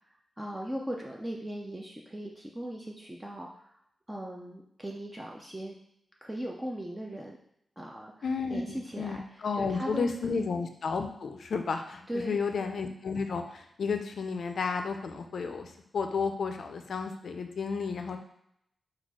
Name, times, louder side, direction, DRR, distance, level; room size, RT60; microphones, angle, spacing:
voice 1, 0.4-3.8 4.1-5.8 6.2-7.4 7.8-10.5 12.1-12.7, equal, 10° right, -1 dB, 0.4 m, -39 dB
voice 2, 8.2-15.7 15.9-18.2, left 5 dB, 60° left, 6 dB, 0.4 m, -32 dB
4.2 x 2.3 x 4.6 m, 0.75 s
wide cardioid pair, 170°, 0 cm